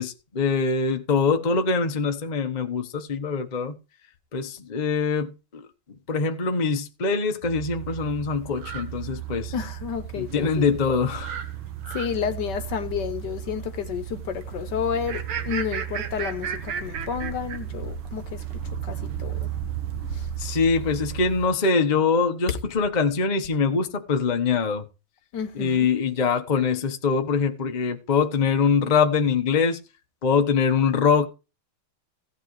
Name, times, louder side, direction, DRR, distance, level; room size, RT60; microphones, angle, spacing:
voice 1, 0.0-3.7 4.3-5.6 6.1-9.5 10.1-11.4 20.4-24.8 25.5-29.8 30.2-31.3, left 5 dB, 30° left, 0.8 m, -23 dB
sound 1, 7.4-21.5, right 9 dB, 75° right, 1.9 m, -34 dB
voice 2, 9.5-10.8 11.9-19.5 20.1-20.3 25.3-25.9, left 7 dB, 60° left, 1.4 m, -31 dB
16.5 x 9.6 x 3.2 m
omnidirectional pair, 2.3 m